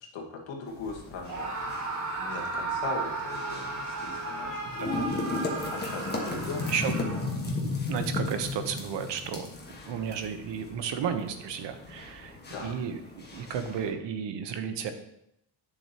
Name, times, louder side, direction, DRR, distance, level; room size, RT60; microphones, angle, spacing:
voice 1, 0.1-1.7 2.2-5.1 5.7-6.8 12.5-12.7, left 4 dB, 80° left, 0 dB, 1.9 m, -39 dB
sound 1, 0.7-13.9, left 3 dB, 20° left, 1.4 m, -36 dB
Screaming, 1.2-7.5, right 3 dB, 40° right, 3.0 m, -35 dB
voice 2, 4.7-5.0 6.7-6.9 7.4-14.9, right 7 dB, 65° right, 8 dB, 1.1 m, -33 dB
9.1 x 7.1 x 3.0 m, 0.80 s
cardioid pair, 100°, 45 cm